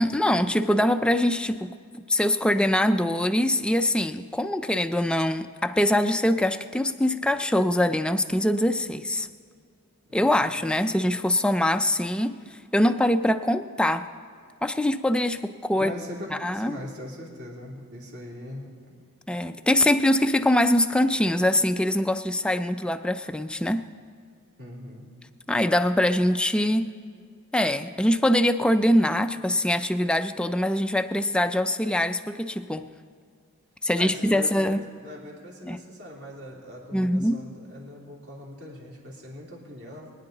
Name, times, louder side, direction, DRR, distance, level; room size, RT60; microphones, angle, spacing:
voice 1, 0.0-1.7 2.1-9.3 10.1-12.4 12.7-14.0 14.6-15.9 16.3-16.8 19.3-23.9 25.5-26.9 27.5-32.9 33.8-34.8 35.7-35.8 36.9-37.4, left 1 dB, 5° left, 8 dB, 0.3 m, -23 dB
voice 2, 10.1-10.5 15.7-19.0 24.6-25.1 34.0-40.1, equal, 50° right, -3 dB, 2.8 m, -41 dB
22.5 x 9.9 x 3.9 m, 2.1 s
head